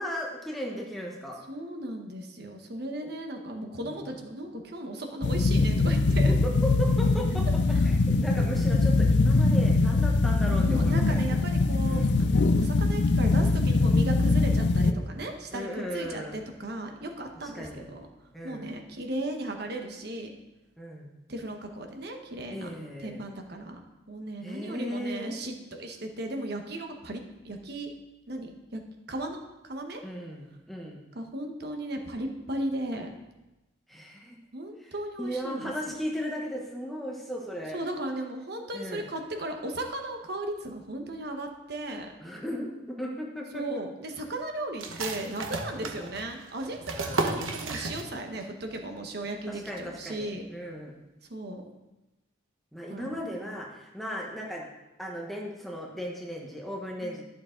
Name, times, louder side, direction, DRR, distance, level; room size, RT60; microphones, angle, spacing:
voice 1, 0.0-1.4 3.8-4.1 6.3-6.5 6.8-7.4 7.8-11.4 11.8-12.1 15.5-16.4 17.5-17.9 18.3-18.7 20.8-21.1 22.5-23.2 24.4-25.4 30.0-31.0 33.9-34.4 34.8-37.8 38.7-39.0 42.2-43.6 45.7-46.0 47.0-47.3 49.5-50.9 52.7-54.7 55.0-57.2, equal, ahead, -1 dB, 1.0 m, -36 dB
voice 2, 1.5-6.3 7.7-7.8 10.6-18.1 18.4-20.3 21.3-22.7 23.0-23.8 24.1-27.9 28.3-28.8 29.1-30.0 31.1-33.1 34.5-36.0 37.7-42.1 43.5-50.4 51.3-51.7 52.9-53.4 57.0-57.2, right 1 dB, 55° right, 4 dB, 1.1 m, -36 dB
sound 1, 5.2-14.9, left 3 dB, 60° left, 0.4 m, -22 dB
sound 2, 44.8-48.4 48.7-48.8 49.2-49.7, right 3 dB, 85° right, 1.0 m, -33 dB
11.5 x 6.9 x 3.8 m, 1.0 s
head